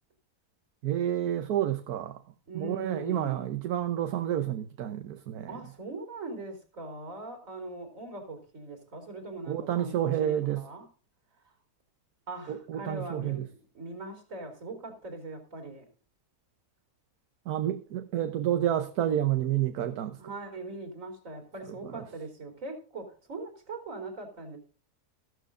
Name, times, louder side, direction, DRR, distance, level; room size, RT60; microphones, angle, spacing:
voice 1, 0.8-2.2 2.5-5.5 9.5-10.6 12.5-13.5 17.5-20.2 21.8-22.0, right 11 dB, 80° right, 1.4 m, -29 dB
voice 2, 2.5-3.5 5.5-10.9 12.3-15.9 20.2-24.6, right 2 dB, 55° right, 4.1 m, -41 dB
15.0 x 12.5 x 2.6 m
omnidirectional pair, 1.6 m